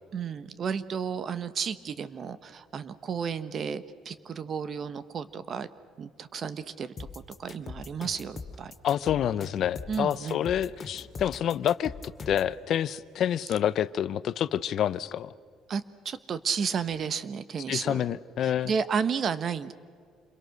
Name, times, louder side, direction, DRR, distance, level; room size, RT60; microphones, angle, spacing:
voice 1, 0.1-5.7 6.0-8.7 9.9-10.5 15.7-19.7, right 6 dB, 45° right, 14 dB, 1.1 m, -33 dB
sound 1, 7.0-12.5, left 4 dB, 30° left, 2.3 m, -41 dB
voice 2, 8.8-11.9 12.3-15.3 17.7-18.7, left 10 dB, 60° left, 16 dB, 0.7 m, -28 dB
28.0 x 22.5 x 6.6 m, 2.2 s
cardioid pair, 120°, 0 cm